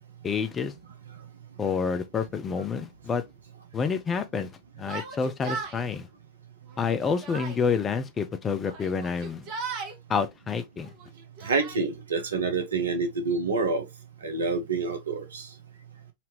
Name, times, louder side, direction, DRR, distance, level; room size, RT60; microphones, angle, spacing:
voice 1, 0.2-0.7 1.6-3.2 3.7-4.5 4.8-6.1 6.8-9.5 10.1-10.9, left 5 dB, 20° left, 0.6 m, -28 dB
Yell, 4.8-5.8 6.7-7.6 8.6-10.0 10.8-11.8, right 5 dB, 40° right, 1.3 m, -37 dB
voice 2, 11.4-13.8 14.2-15.5, right 4 dB, 70° right, 1.0 m, -27 dB
4.2 x 2.8 x 3.1 m
figure-of-eight pair, 90°, 0 cm